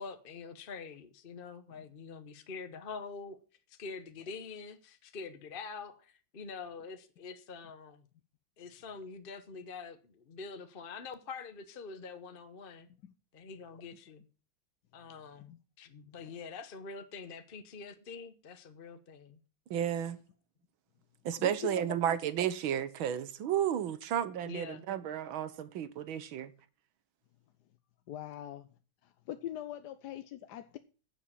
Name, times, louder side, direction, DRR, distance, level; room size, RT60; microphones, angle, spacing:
voice 1, 0.0-3.4 3.7-8.1 8.6-12.9 13.3-14.2 14.9-15.5 15.8-19.4 24.4-24.9, left 5 dB, 40° left, 0.8 m, -45 dB
voice 2, 19.7-20.2 21.3-26.5, right 10 dB, 85° right, 1.8 m, -32 dB
voice 3, 21.4-21.8 28.1-28.7 29.0-30.8, left 12 dB, 65° left, 1.2 m, -42 dB
10.5 x 7.5 x 8.6 m
omnidirectional pair, 2.2 m